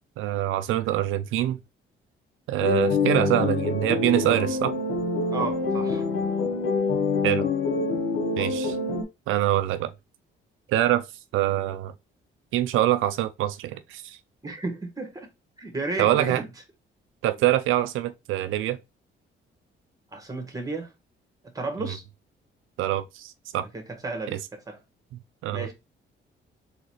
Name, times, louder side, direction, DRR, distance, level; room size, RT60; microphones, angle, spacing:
voice 1, 0.2-1.6 2.5-4.7 7.2-7.4 8.4-8.8 9.3-9.9 10.7-11.0 11.3-11.9 12.5-14.2 16.0-16.4 17.2-18.8 21.8-21.9 22.8-23.6 24.3-24.4 25.4-25.7, right 13 dB, 85° right, 0.4 m, -24 dB
sound 1, 2.6-9.0, left 4 dB, 85° left, 1.0 m, -26 dB
voice 2, 5.3-6.1 14.4-15.3 15.6-16.4 20.1-20.9 21.5-22.0 23.7-24.4 24.7-24.8 25.5-25.7, right 3 dB, 20° right, 1.6 m, -33 dB
3.9 x 3.2 x 3.1 m
cardioid pair, 90°, 20 cm